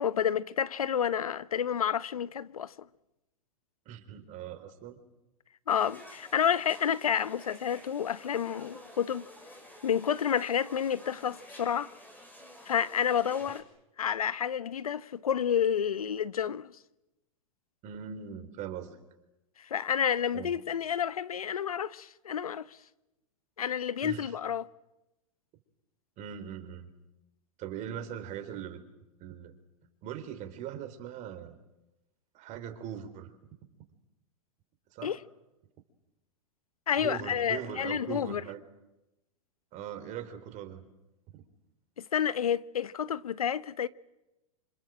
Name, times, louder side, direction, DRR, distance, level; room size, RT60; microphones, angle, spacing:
voice 1, 0.0-2.7 5.7-9.3 9.8-11.9 12.7-13.6 14.0-16.7 19.6-22.7 23.6-24.7 35.0-35.2 36.9-38.4 42.0-43.9, left 8 dB, 90° left, 0.9 m, -30 dB
voice 2, 3.9-5.0 17.8-19.0 20.3-20.5 24.0-24.3 26.2-26.9 27.6-28.8 29.2-29.5 30.0-31.6 32.3-33.3 34.9-35.2 36.9-38.6 39.7-40.8, right 9 dB, 40° right, 3.9 m, -40 dB
sound 1, 5.7-13.6, left 1 dB, 10° left, 6.4 m, -51 dB
26.5 x 26.5 x 7.7 m
hypercardioid pair, 110°, 18 cm